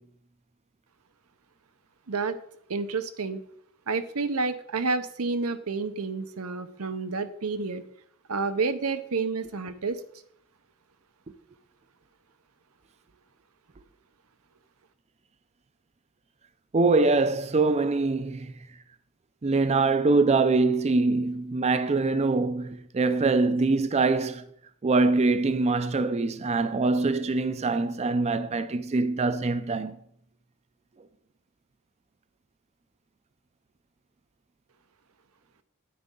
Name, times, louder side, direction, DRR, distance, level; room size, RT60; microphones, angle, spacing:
voice 1, 2.7-3.4 3.9-7.8 8.3-10.0, right 4 dB, 90° right, 0.9 m, -29 dB
voice 2, 16.7-18.5 19.4-24.4 24.8-30.0, right 3 dB, 30° right, 0.4 m, -24 dB
9.3 x 9.3 x 3.8 m
head